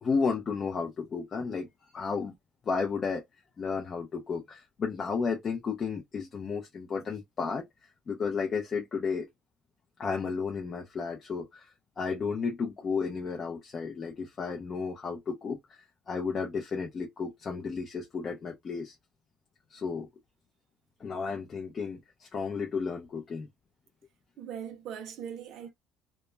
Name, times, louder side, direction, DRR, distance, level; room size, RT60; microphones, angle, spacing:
voice 1, 0.0-1.7 1.9-2.3 2.7-3.2 3.6-7.7 8.1-9.3 10.0-19.0 19.7-20.1 21.0-23.5, left 5 dB, 30° left, 0.5 m, -33 dB
voice 2, 24.4-25.7, right 8 dB, 55° right, 0.5 m, -40 dB
2.2 x 2.0 x 3.1 m
cardioid pair, 155°, 0 cm